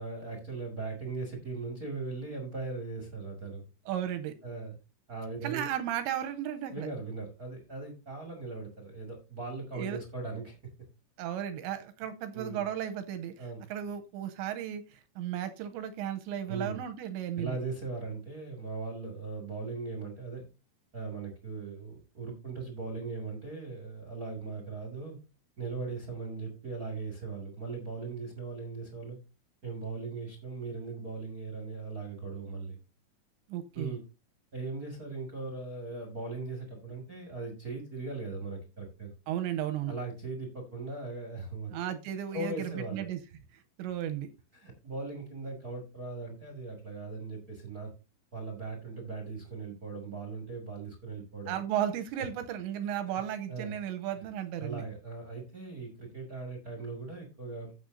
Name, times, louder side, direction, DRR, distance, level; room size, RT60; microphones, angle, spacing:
voice 1, 0.0-3.6 4.4-4.8 5.1-5.7 6.7-10.5 12.3-12.7 13.4-13.6 16.5-16.8 17.3-20.4 20.9-25.2 25.6-29.2 29.6-32.8 33.7-34.0 34.5-39.1 39.9-42.0 42.3-43.1 44.5-47.9 48.3-51.6 52.2-52.3 53.5-53.8 54.6-57.7, right 3 dB, 55° right, 1 dB, 0.9 m, -39 dB
voice 2, 3.9-4.3 5.4-6.9 9.7-10.0 11.2-17.6 33.5-34.0 39.3-39.9 41.7-43.2 43.5-44.3 51.5-54.8, right 10 dB, 80° right, 8 dB, 2.7 m, -35 dB
15.0 x 6.9 x 2.7 m, 0.30 s
omnidirectional pair, 5.8 m